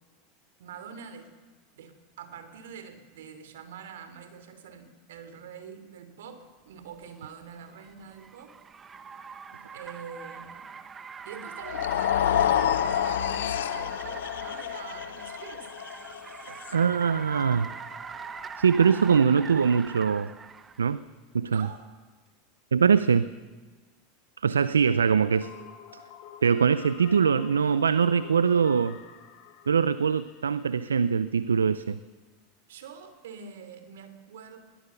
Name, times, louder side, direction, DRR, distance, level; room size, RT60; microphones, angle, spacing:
voice 1, 0.6-1.3 1.7-8.5 9.7-10.7 11.2-11.9 13.0-15.7 21.5-21.8 32.7-34.6, right 6 dB, 75° right, 9 dB, 3.1 m, -45 dB
Car, 6.9-20.9, right 5 dB, 25° right, 1.3 m, -43 dB
sound 1, 11.6-17.9, left 10 dB, 75° left, 1.0 m, -29 dB
voice 2, 16.7-17.7 18.6-20.3 20.8-21.0 21.3-21.7 22.7-23.3 24.4-25.5 26.4-29.0 29.7-32.0, right 6 dB, 90° right, 16 dB, 0.5 m, -22 dB
sound 2, 25.2-31.0, left 9 dB, 55° left, 3.7 m, -49 dB
21.5 x 18.5 x 7.0 m, 1.4 s
hypercardioid pair, 90°, 0 cm